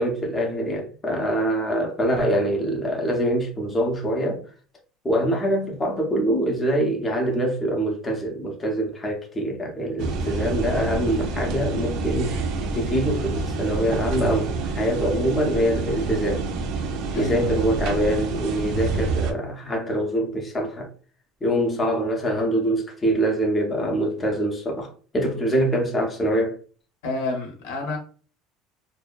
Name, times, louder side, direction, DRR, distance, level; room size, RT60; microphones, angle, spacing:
voice 1, 0.0-4.4 5.0-12.4 12.7-16.5 17.1-20.9 21.4-26.6, right 1 dB, 15° left, 0.5 m, -24 dB
sound 1, 10.0-19.3, right 3 dB, 60° right, 0.4 m, -27 dB
voice 2, 17.1-17.7 27.0-28.0, left 3 dB, 90° left, 0.9 m, -29 dB
2.6 x 2.2 x 2.4 m
cardioid pair, 150°, 0 cm